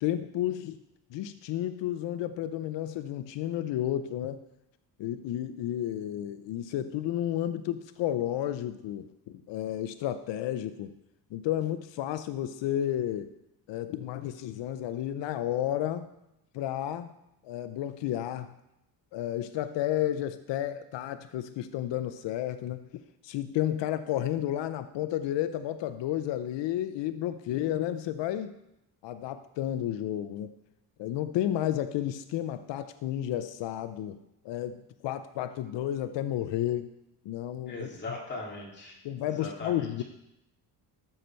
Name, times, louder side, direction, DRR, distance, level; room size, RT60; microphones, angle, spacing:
voice 1, 0.0-0.8 1.1-4.4 5.0-9.1 9.5-10.9 11.3-13.3 13.7-16.1 16.5-17.1 17.4-18.5 19.1-28.5 29.0-30.5 31.0-34.2 34.4-36.9 37.2-37.9 39.0-40.0, left 12 dB, 90° left, 11 dB, 0.6 m, -32 dB
voice 2, 37.7-39.0 39.2-40.0, left 2 dB, 25° left, -2 dB, 2.1 m, -39 dB
13.5 x 6.7 x 4.4 m, 0.87 s
cardioid pair, 170°, 42 cm